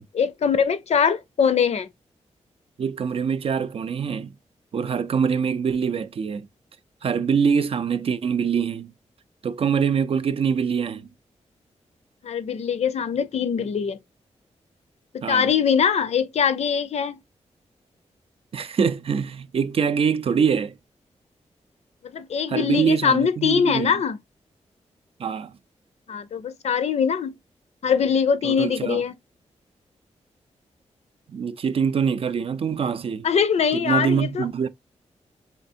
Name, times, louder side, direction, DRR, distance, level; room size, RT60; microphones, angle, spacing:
voice 1, 0.1-1.9 12.2-14.0 15.1-17.2 22.1-24.2 26.1-27.3 27.8-29.1 33.2-34.5, left 7 dB, 65° left, 0.6 m, -22 dB
voice 2, 2.8-4.3 4.7-6.5 7.0-8.9 9.4-11.1 15.2-15.5 18.5-20.7 22.5-23.9 25.2-25.5 28.4-29.0 31.3-33.3 33.7-34.7, right 6 dB, 55° right, 0.4 m, -24 dB
4.4 x 3.3 x 2.6 m
wide cardioid pair, 135°, 12 cm